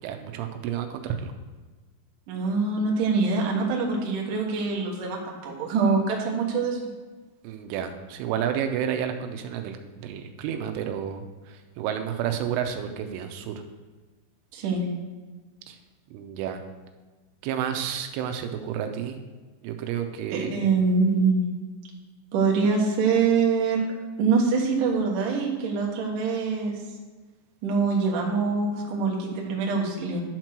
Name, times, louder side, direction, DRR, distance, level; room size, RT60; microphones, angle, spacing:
voice 1, 0.0-1.3 7.4-13.6 15.7-15.8 16.1-16.6 17.4-19.2 19.6-20.7, right 9 dB, 85° right, 6 dB, 3.1 m, -31 dB
voice 2, 2.3-6.9 14.5-14.8 20.3-21.4 22.3-23.8 24.2-26.7 27.6-30.2, right 4 dB, 60° right, -1 dB, 2.3 m, -24 dB
11.0 x 4.5 x 6.1 m, 1.3 s
omnidirectional pair, 5.7 m